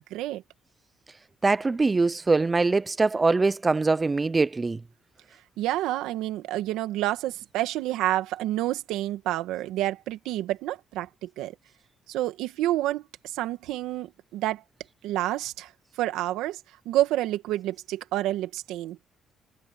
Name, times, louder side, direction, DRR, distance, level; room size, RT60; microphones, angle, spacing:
voice 1, 0.1-0.4 5.6-11.5 12.1-13.0 13.3-14.6 15.0-15.7 16.0-16.6 16.9-19.0, right 14 dB, 85° right, 2.1 m, -28 dB
voice 2, 1.4-4.8, right 3 dB, 25° right, 0.7 m, -23 dB
supercardioid pair, 70°, 0 cm